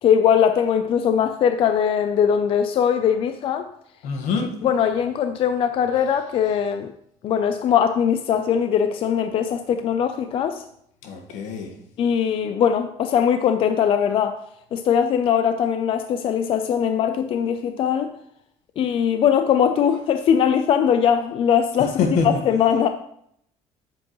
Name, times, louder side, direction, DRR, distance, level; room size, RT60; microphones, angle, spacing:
voice 1, 0.0-3.7 4.6-6.9 7.2-10.6 12.0-14.4 14.7-18.1 18.8-22.0 22.2-22.9, left 8 dB, 45° left, 8 dB, 0.5 m, -20 dB
voice 2, 4.0-4.5 11.0-11.7 22.0-22.4, left 4 dB, 80° left, 4 dB, 1.5 m, -24 dB
9.2 x 7.7 x 3.1 m, 0.71 s
cardioid pair, 160°, 13 cm